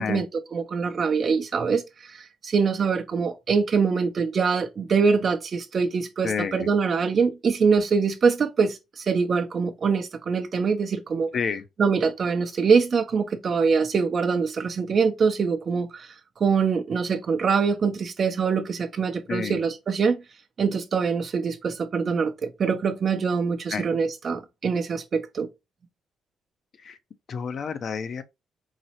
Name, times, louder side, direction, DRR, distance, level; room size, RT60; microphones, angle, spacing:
voice 1, 0.0-11.3 11.8-16.1 16.4-20.2 20.6-25.5, right 5 dB, 50° right, 0.6 m, -24 dB
voice 2, 6.2-6.7 11.3-11.6 19.3-19.6 23.7-23.8 26.8-27.0 27.3-28.2, left 6 dB, 55° left, 0.5 m, -29 dB
4.0 x 2.0 x 2.8 m
cardioid pair, 90°, 0 cm